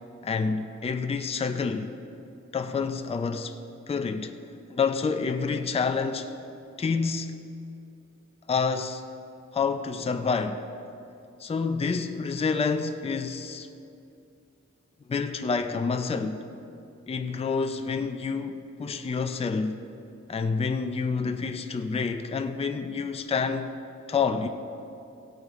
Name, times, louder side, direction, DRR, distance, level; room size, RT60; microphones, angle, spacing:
voice 1, 0.2-1.9 2.5-3.6 3.9-4.3 4.7-6.3 6.8-7.3 8.5-9.0 9.5-10.6 11.4-13.7 15.1-16.5 17.1-19.8 20.3-23.8 24.1-24.5, left 5 dB, 20° left, 0.4 m, -28 dB
17.0 x 8.5 x 3.6 m
wide cardioid pair, 170°, 30 cm